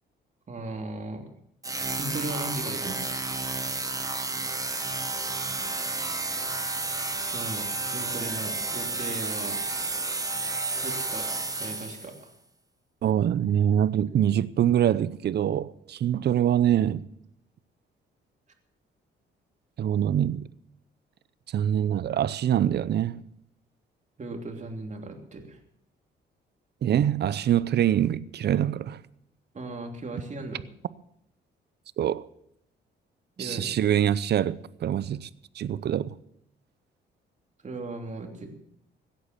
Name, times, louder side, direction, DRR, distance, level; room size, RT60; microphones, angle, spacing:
voice 1, 0.5-1.3 2.0-3.0 7.2-9.6 10.7-11.3 11.6-12.3 24.2-25.6 29.5-30.7 33.4-33.8 37.6-38.5, right 2 dB, 35° right, 3.1 m, -37 dB
sound 1, 1.6-12.2, right 3 dB, 15° right, 1.4 m, -31 dB
voice 2, 13.0-17.0 19.8-20.5 21.5-23.2 26.8-29.0 32.0-32.2 33.4-35.3 35.6-36.1, right 10 dB, 55° right, 0.7 m, -24 dB
16.5 x 9.5 x 7.2 m
cardioid pair, 90°, 20 cm